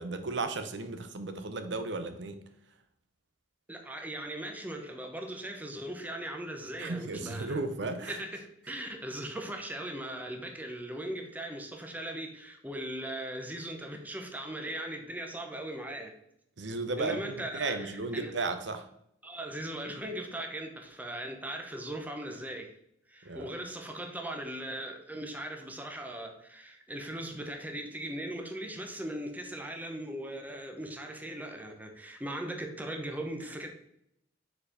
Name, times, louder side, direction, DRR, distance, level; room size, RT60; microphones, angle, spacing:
voice 1, 0.0-2.4 6.8-8.1 16.6-18.8 23.2-23.5, right 3 dB, 70° right, 8 dB, 0.7 m, -34 dB
voice 2, 3.7-7.6 8.0-16.1 17.0-18.3 19.2-22.7 23.1-33.7, right 1 dB, 10° right, 3 dB, 0.7 m, -39 dB
4.8 x 4.4 x 5.0 m, 0.74 s
head